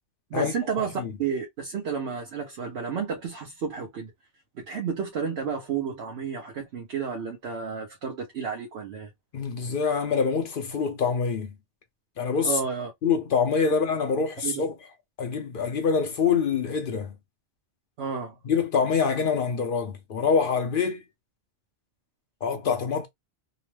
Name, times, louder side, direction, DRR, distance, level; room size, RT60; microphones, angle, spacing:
voice 1, 0.3-4.1 4.5-9.1 12.4-12.9 14.4-14.6 18.0-18.4, right 6 dB, 70° right, 0.9 m, -31 dB
voice 2, 9.3-11.5 12.2-12.6 13.0-14.7 15.2-17.1 18.4-21.0 22.4-23.1, left 5 dB, 60° left, 0.6 m, -25 dB
2.9 x 2.0 x 3.0 m
omnidirectional pair, 1.2 m